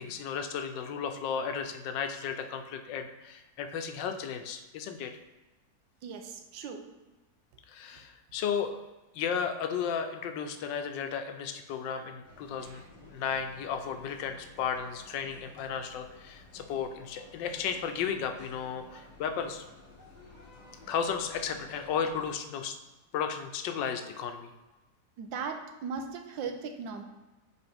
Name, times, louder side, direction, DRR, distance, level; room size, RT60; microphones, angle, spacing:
voice 1, 0.0-5.1 7.7-8.8 9.1-12.8 13.1-19.6 20.9-22.7 23.1-24.5, left 7 dB, 80° left, 7 dB, 1.3 m, -34 dB
voice 2, 6.0-6.8 12.6-12.8 25.2-27.0, right 5 dB, 90° right, 5 dB, 1.4 m, -38 dB
sound 1, 12.2-22.3, left 2 dB, 35° left, 0.8 m, -53 dB
6.7 x 4.4 x 3.5 m, 1.1 s
omnidirectional pair, 2.0 m